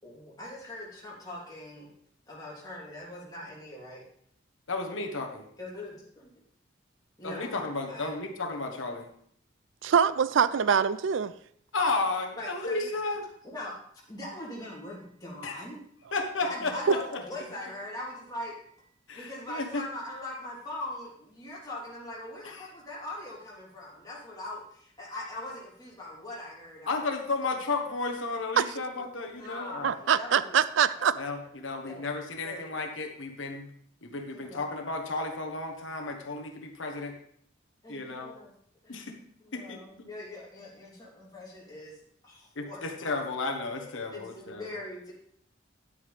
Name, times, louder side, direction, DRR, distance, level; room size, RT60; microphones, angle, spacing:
voice 1, 0.0-1.9 2.3-4.0 5.6-6.4 7.2-7.6 7.9-8.3 12.3-13.0 13.4-13.8 14.1-15.8 16.4-27.0 27.4-27.5 29.3-31.2 31.9-32.1 32.4-32.8 34.3-34.7 37.8-38.5 38.8-39.1 39.4-42.8 44.1-45.1, left 1 dB, 20° left, -6 dB, 3.4 m, -41 dB
voice 2, 4.7-5.5 7.2-9.1 11.7-13.2 15.4-15.6 16.1-17.2 19.1-19.8 22.4-22.7 26.9-30.0 31.2-33.7 34.0-37.1 37.9-38.3 38.9-39.1 39.5-39.8 42.5-44.6, left 3 dB, 75° left, 4 dB, 1.3 m, -33 dB
voice 3, 9.8-11.3 28.6-28.7 29.8-31.1, right 7 dB, 70° right, 16 dB, 0.4 m, -24 dB
10.5 x 8.5 x 3.5 m, 0.64 s
head